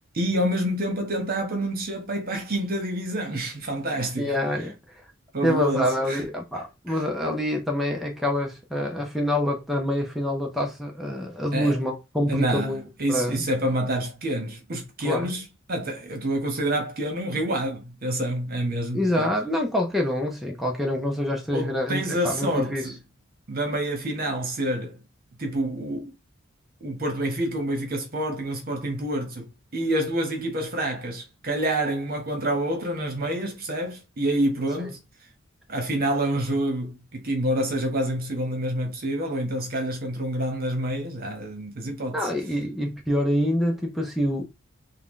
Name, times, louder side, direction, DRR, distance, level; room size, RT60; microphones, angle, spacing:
voice 1, 0.1-4.3 5.3-6.2 6.9-7.0 11.5-11.8 12.3-19.3 21.5-22.9 23.5-25.0 25.4-26.1 26.8-35.0 35.7-42.2, right 1 dB, 45° right, 1.1 m, -27 dB
voice 2, 4.2-5.0 5.4-12.8 13.1-13.4 15.0-15.3 18.9-22.9 42.1-44.4, left 1 dB, ahead, 0.5 m, -26 dB
3.7 x 2.2 x 3.7 m
head